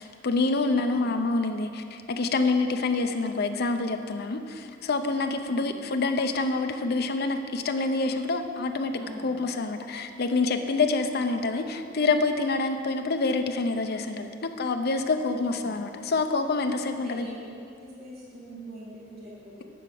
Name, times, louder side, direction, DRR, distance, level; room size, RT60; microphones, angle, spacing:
voice 1, 0.0-17.3, left 3 dB, 55° left, 6 dB, 0.6 m, -27 dB
voice 2, 0.7-1.3 5.5-5.8 9.0-9.4 15.3-15.8 16.9-17.5 17.8-19.6, equal, 50° right, -7 dB, 2.8 m, -44 dB
11.0 x 4.7 x 7.6 m, 2.4 s
head